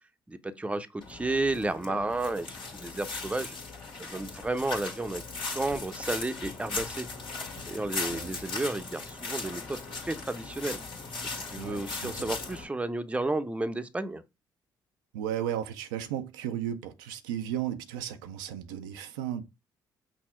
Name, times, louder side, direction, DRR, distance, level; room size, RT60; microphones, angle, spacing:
voice 1, 0.3-3.6 4.0-7.1 7.7-10.8 11.2-14.2, right 2 dB, 10° right, 0.6 m, -32 dB
sound 1, 1.0-12.6, left 3 dB, 60° left, 1.7 m, -38 dB
voice 2, 7.9-8.3 11.6-12.3 15.1-19.4, right 10 dB, 80° right, 0.5 m, -35 dB
5.9 x 2.0 x 4.4 m
hypercardioid pair, 50°, 10 cm